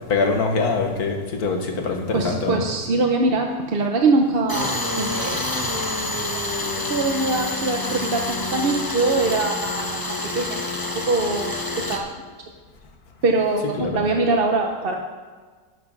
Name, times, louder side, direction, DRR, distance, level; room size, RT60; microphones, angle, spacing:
voice 1, 0.1-2.6 13.8-14.0, left 4 dB, 75° left, 3 dB, 1.9 m, -23 dB
voice 2, 2.1-5.4 6.8-10.0 10.3-10.6 11.1-11.6 11.9-12.1 13.2-14.9, right 3 dB, 45° right, 2 dB, 0.8 m, -22 dB
Tools, 4.5-12.0, left 2 dB, 20° left, 0.8 m, -27 dB
12.0 x 7.6 x 5.3 m, 1.5 s
omnidirectional pair, 1.6 m